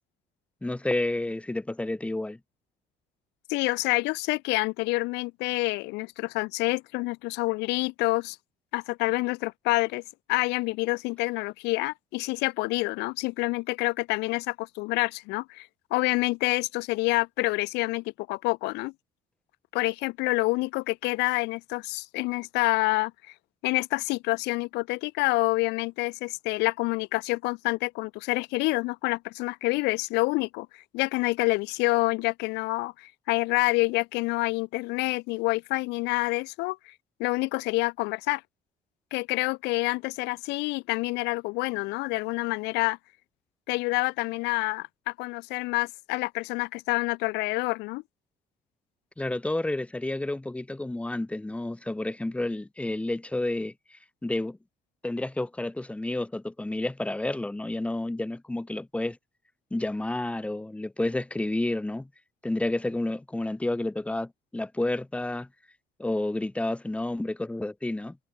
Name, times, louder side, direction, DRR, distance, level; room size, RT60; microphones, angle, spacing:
voice 1, 0.6-2.4 49.2-54.6 55.0-59.2 59.7-62.1 62.4-65.5 66.0-68.2, left 2 dB, 5° left, 0.8 m, -30 dB
voice 2, 3.5-8.4 8.7-10.0 10.3-18.9 19.7-23.1 23.6-36.9 37.2-38.4 39.1-43.0 43.7-48.0, left 23 dB, 90° left, 0.4 m, -27 dB
cardioid pair, 110°, 17 cm